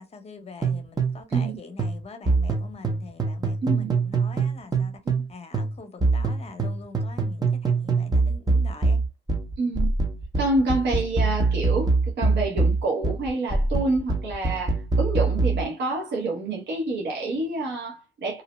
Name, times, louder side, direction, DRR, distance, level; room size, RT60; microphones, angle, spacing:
voice 1, 0.0-5.0 5.3-9.0, left 4 dB, 30° left, 0.7 m, -43 dB
sound 1, 0.6-5.3 5.5-15.6, right 3 dB, 20° right, 0.6 m, -24 dB
voice 2, 3.6-4.0 5.1-5.2 9.6-9.9 10.4-18.4, right 2 dB, 60° right, 0.8 m, -27 dB
2.6 x 2.0 x 3.0 m
cardioid pair, 90°, 20 cm